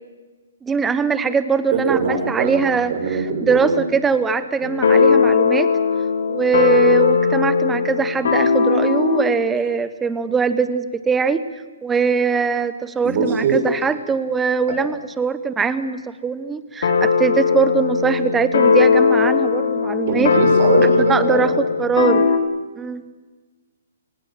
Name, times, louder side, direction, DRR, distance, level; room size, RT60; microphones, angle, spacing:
voice 1, 0.6-5.7 6.3-11.4 11.8-20.3 20.8-22.3 22.8-23.0, right 5 dB, 10° right, 13 dB, 1.0 m, -21 dB
voice 2, 1.7-2.6 2.9-3.8 13.0-13.6 14.7-14.8 20.1-21.6, right 5 dB, 45° right, 3 dB, 7.0 m, -22 dB
sound 1, 4.6-9.3 16.8-22.4, left 5 dB, 70° left, 3.3 m, -18 dB
28.5 x 19.0 x 7.5 m, 1.3 s
hypercardioid pair, 150°, 0 cm